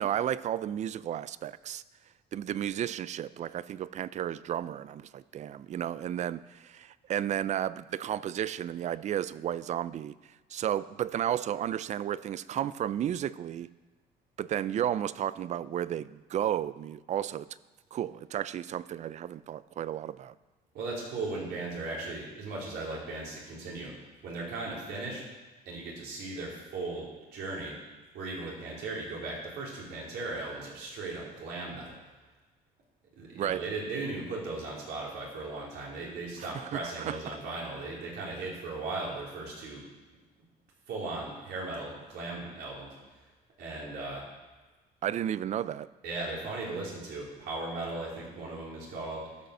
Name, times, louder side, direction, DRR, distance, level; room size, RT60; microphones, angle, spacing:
voice 1, 0.0-1.8 2.3-10.1 10.5-13.7 14.4-17.5 17.9-20.3 33.4-33.6 36.4-37.4 45.0-45.9, right 10 dB, 45° right, 18 dB, 0.4 m, -33 dB
voice 2, 20.7-23.9 24.2-25.3 25.7-27.8 28.1-31.9 33.2-39.8 40.9-42.9 43.6-44.2 46.0-49.2, right 3 dB, 75° right, -4 dB, 3.7 m, -37 dB
12.5 x 5.3 x 6.6 m, 1.2 s
cardioid pair, 110°, 17 cm